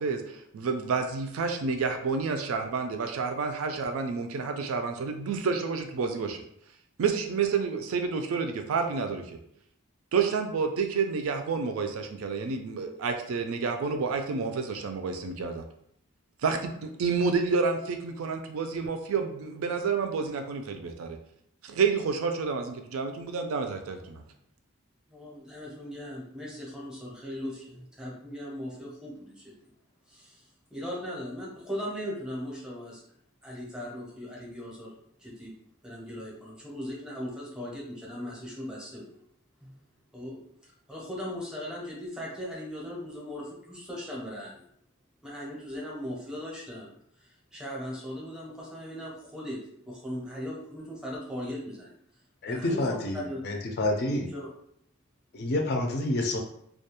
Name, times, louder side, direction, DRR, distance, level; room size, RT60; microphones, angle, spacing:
voice 1, 0.0-6.4 7.0-9.4 10.1-15.6 16.4-21.2 21.6-24.2, right 5 dB, 70° right, 6 dB, 0.4 m, -29 dB
voice 2, 25.1-29.5 30.1-30.4 30.7-33.0 33.4-34.9 35.2-35.5 35.8-39.1 39.6-39.8 40.1-44.6 45.2-46.9 47.2-49.6 49.8-51.9 52.5-53.4 54.3-54.5, equal, 5° right, -4 dB, 0.6 m, -38 dB
voice 3, 52.4-54.3 55.3-56.4, left 1 dB, 50° left, 2 dB, 0.4 m, -28 dB
2.3 x 2.2 x 2.9 m, 0.71 s
head